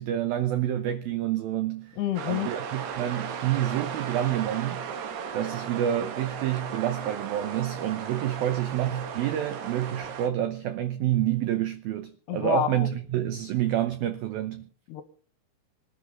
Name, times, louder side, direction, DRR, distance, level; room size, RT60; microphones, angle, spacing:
voice 1, 0.0-2.0 2.2-4.9 5.3-14.7, right 12 dB, 85° right, 2.1 m, -28 dB
voice 2, 2.0-2.5 12.3-12.9 14.9-15.0, left 11 dB, 70° left, 3.0 m, -28 dB
sound 1, 2.2-10.3, right 7 dB, 65° right, 3.4 m, -36 dB
26.0 x 11.0 x 3.8 m
omnidirectional pair, 5.5 m